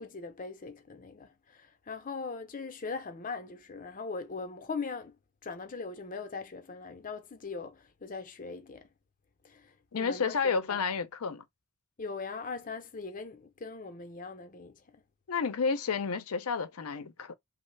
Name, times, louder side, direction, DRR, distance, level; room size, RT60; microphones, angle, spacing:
voice 1, 0.0-5.2 5.4-8.9 9.4-10.9 12.0-15.0, left 4 dB, 35° left, 0.6 m, -40 dB
voice 2, 9.9-11.4 15.3-17.3, left 5 dB, 75° left, 0.6 m, -31 dB
3.1 x 2.0 x 3.2 m
head